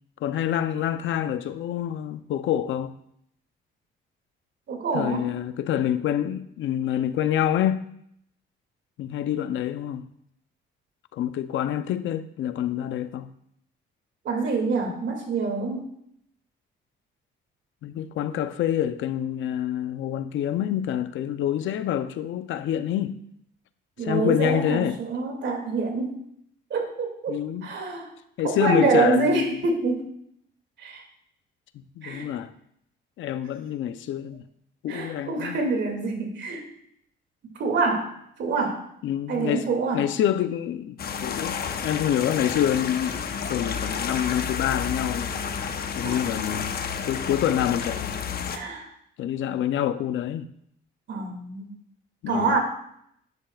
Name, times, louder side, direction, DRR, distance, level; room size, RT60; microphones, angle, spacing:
voice 1, 0.2-2.9 4.9-7.8 9.0-10.0 11.1-13.3 17.8-23.2 24.0-25.0 27.3-27.7 28.4-29.6 32.0-32.5 33.2-34.4 34.8-35.6 39.0-39.7 39.9-41.0 41.2-43.2 43.5-45.3 46.0-46.8 47.1-48.2 49.2-50.5 52.2-52.4, left 10 dB, 75° left, 0.6 m, -26 dB
voice 2, 4.7-5.3 14.2-15.9 24.0-26.2 26.7-28.1 28.4-30.0 30.8-31.0 32.0-32.3 34.9-36.6 37.6-38.1 38.4-38.8 39.3-40.0 46.0-46.2 48.5-48.9 51.1-51.8 52.3-52.6, right 4 dB, 65° right, 2.4 m, -26 dB
sound 1, 41.0-48.6, left 6 dB, 50° left, 0.9 m, -31 dB
11.5 x 11.0 x 2.4 m
cardioid pair, 90°, 20 cm